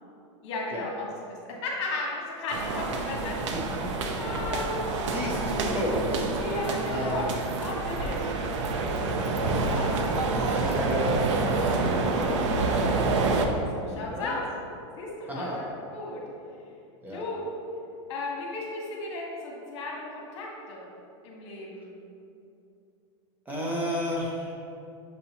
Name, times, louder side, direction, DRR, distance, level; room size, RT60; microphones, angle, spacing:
voice 1, 0.4-3.6 4.2-5.1 6.4-7.3 7.6-8.3 9.5-10.0 13.7-14.4 15.0-16.2 17.1-17.4 18.1-20.9 21.2-21.9, left 2 dB, 65° left, -2 dB, 1.1 m, -35 dB
sound 1, 2.5-13.5, right 3 dB, 75° right, 0.5 m, -27 dB
voice 2, 3.5-3.9 5.1-6.3 6.9-7.4 9.4-11.2 11.6-13.0 14.1-14.3 15.3-15.7 17.0-17.2 23.5-24.6, equal, 10° right, -4 dB, 0.6 m, -33 dB
6.5 x 2.7 x 2.8 m, 2.7 s
supercardioid pair, 140°, 15 cm